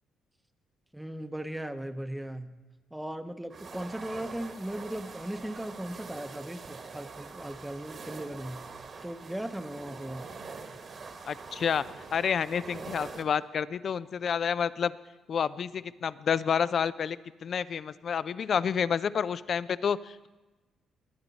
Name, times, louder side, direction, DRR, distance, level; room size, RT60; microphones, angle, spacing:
voice 1, 0.9-2.5 2.9-8.6 9.0-10.3, right 1 dB, 5° right, 9 dB, 0.8 m, -37 dB
sound 1, 3.5-13.2, right 4 dB, 45° right, 1.4 m, -44 dB
voice 2, 11.3-11.9 12.1-14.9 15.3-20.3, left 7 dB, 55° left, 17 dB, 0.4 m, -29 dB
20.5 x 9.7 x 4.1 m, 1.1 s
cardioid pair, 90°, 0 cm